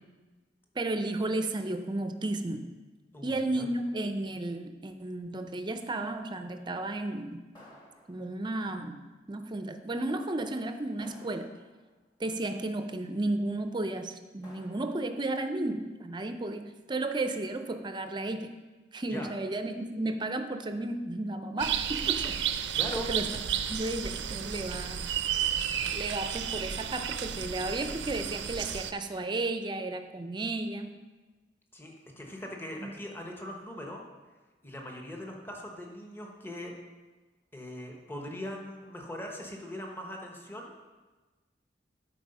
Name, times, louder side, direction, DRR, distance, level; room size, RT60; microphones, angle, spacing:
voice 1, 0.8-2.7 3.2-7.4 8.1-9.0 9.3-11.5 12.2-18.5 18.9-22.4 23.0-23.3 23.7-25.0 25.9-31.0 32.8-32.9, right 2 dB, 25° right, 8 dB, 0.5 m, -33 dB
voice 2, 3.1-3.7 19.1-19.3 22.6-23.1 31.7-34.0 34.6-36.7 37.5-40.7, equal, 15° left, 0 dB, 1.0 m, -41 dB
sound 1, 7.5-8.6 11.0-12.0 14.4-15.3, equal, 30° left, 2.4 m, -56 dB
sound 2, 21.6-28.9, right 9 dB, 75° right, 0.5 m, -32 dB
11.5 x 4.7 x 5.4 m, 1.2 s
head